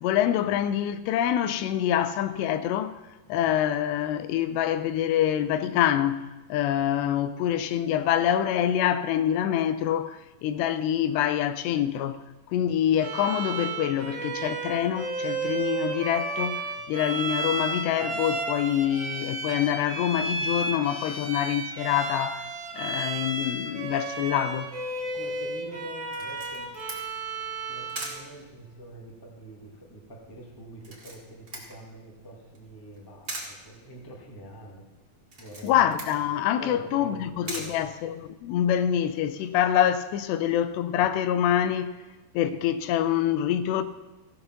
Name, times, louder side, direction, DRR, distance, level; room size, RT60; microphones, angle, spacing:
voice 1, 0.0-3.0 3.3-6.2 6.5-12.2 12.5-22.5 22.7-24.7 35.6-41.9 42.3-43.8, left 10 dB, 90° left, 2.8 m, -26 dB
Bowed string instrument, 13.0-28.2, right 3 dB, 60° right, 1.2 m, -33 dB
voice 2, 25.0-26.8 27.7-34.8 35.4-35.8 36.6-37.8, equal, 30° left, 0.4 m, -45 dB
Camera, 26.1-38.6, right 2 dB, 80° right, 0.5 m, -44 dB
16.0 x 6.8 x 6.0 m
omnidirectional pair, 4.8 m